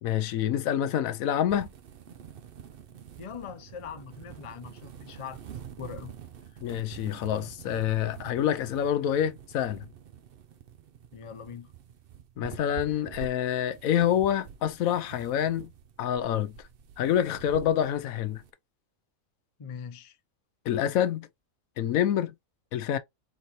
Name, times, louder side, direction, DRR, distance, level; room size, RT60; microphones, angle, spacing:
voice 1, 0.0-1.7 6.6-9.8 12.4-15.7 16.0-16.5 17.0-18.4 20.7-21.3 21.8-22.3 22.7-23.0, left 10 dB, 85° left, 1.1 m, -27 dB
sound 1, 1.5-18.5, right 9 dB, 60° right, 0.6 m, -47 dB
voice 2, 3.2-5.4 5.8-6.1 11.1-11.7 19.6-20.2, left 7 dB, 40° left, 0.5 m, -41 dB
4.1 x 3.8 x 3.0 m
omnidirectional pair, 1.4 m